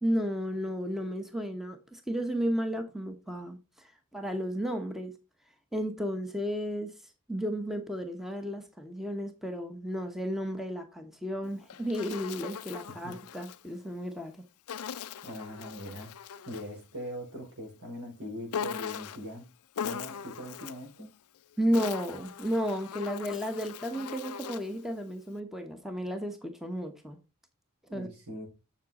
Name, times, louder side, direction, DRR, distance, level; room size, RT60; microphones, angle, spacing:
voice 1, 0.0-5.1 5.7-6.9 7.3-14.4 21.6-27.2 27.9-28.1, equal, ahead, 1.0 m, -33 dB
Insect, 11.4-13.6 14.7-16.8 18.5-19.3 19.7-20.9 21.5-24.8, left 8 dB, 80° left, 0.5 m, -40 dB
voice 2, 15.2-16.1 16.5-19.4 19.8-21.1 27.9-28.5, equal, 70° right, 5.8 m, -41 dB
7.4 x 7.2 x 4.1 m
head